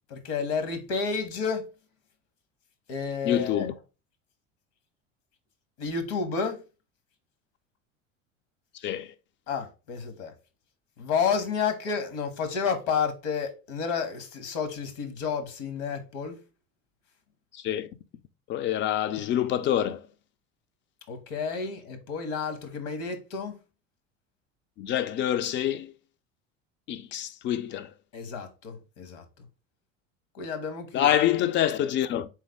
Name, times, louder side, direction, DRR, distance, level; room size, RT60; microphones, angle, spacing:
voice 1, 0.1-1.7 2.9-3.7 5.8-6.6 9.5-10.3 11.0-16.4 21.1-23.6 28.1-29.5 30.3-31.2, left 6 dB, 60° left, 1.1 m, -31 dB
voice 2, 3.2-3.7 8.8-9.1 17.6-17.9 18.5-20.1 24.8-25.9 26.9-27.9 30.9-32.3, left 11 dB, 30° left, 0.4 m, -26 dB
3.6 x 3.3 x 3.4 m
hypercardioid pair, 85°, 39 cm